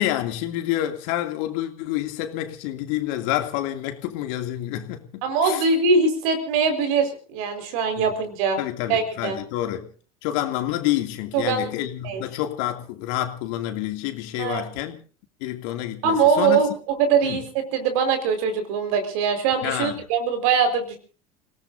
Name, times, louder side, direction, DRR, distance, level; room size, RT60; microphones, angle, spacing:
voice 1, 0.0-5.6 8.0-8.1 8.6-9.9 10.2-15.0 15.4-16.6 17.2-17.4 19.6-19.9, left 13 dB, 65° left, 2.6 m, -28 dB
voice 2, 5.2-8.6 8.9-9.4 11.3-11.7 12.0-12.2 14.4-14.6 16.0-16.7 17.0-21.0, right 5 dB, 65° right, 4.8 m, -22 dB
29.5 x 18.0 x 2.7 m
hypercardioid pair, 75°, 19 cm